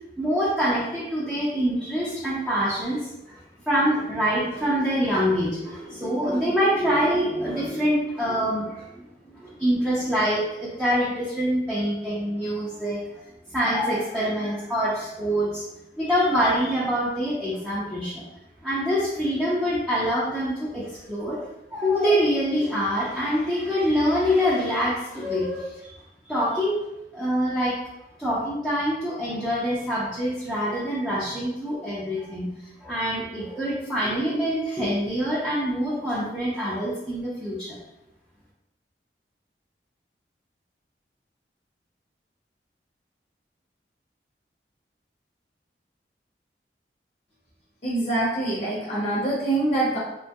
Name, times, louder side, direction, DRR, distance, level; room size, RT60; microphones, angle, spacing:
voice 1, 0.2-3.0 3.3-3.4 3.7-13.0 13.5-15.6 16.0-18.2 18.6-21.4 21.7-25.9 26.3-26.9 27.1-27.8 28.2-32.5 32.8-37.8, equal, ahead, -10 dB, 0.5 m, -25 dB
voice 2, 47.8-50.0, right 2 dB, 40° left, -8 dB, 0.8 m, -25 dB
2.9 x 2.2 x 2.8 m, 0.91 s
head